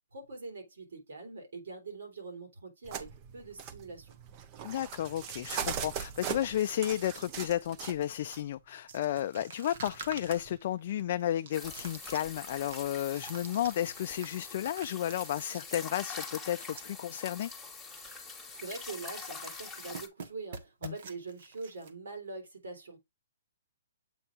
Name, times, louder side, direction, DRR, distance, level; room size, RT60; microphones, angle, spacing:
voice 1, 0.1-4.2 18.6-23.0, right 3 dB, 75° right, 3.2 m, -43 dB
sound 1, 2.8-8.4 9.8-10.6, right 8 dB, 30° right, 0.7 m, -40 dB
voice 2, 4.6-17.5 20.8-21.0, left 11 dB, 50° left, 0.3 m, -33 dB
sound 2, 8.9-17.2 17.5-17.6 17.9-18.2 18.5-19.3 19.5-21.9, right 5 dB, 55° right, 1.1 m, -48 dB
sound 3, 11.5-20.1, left 4 dB, 5° left, 1.4 m, -44 dB
7.8 x 2.7 x 4.8 m
hypercardioid pair, 150°, 0 cm